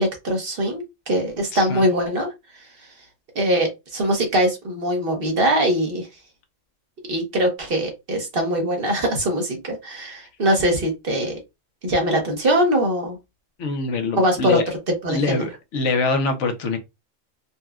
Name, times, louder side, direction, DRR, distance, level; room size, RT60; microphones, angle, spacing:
voice 1, 0.0-2.3 3.3-6.1 7.1-11.4 11.8-13.2 14.2-14.6 15.0-15.5, right 1 dB, 50° right, 1.1 m, -22 dB
voice 2, 1.5-1.8 13.6-14.6 15.1-16.8, left 3 dB, 75° left, 1.0 m, -24 dB
4.1 x 2.2 x 2.3 m
omnidirectional pair, 1.3 m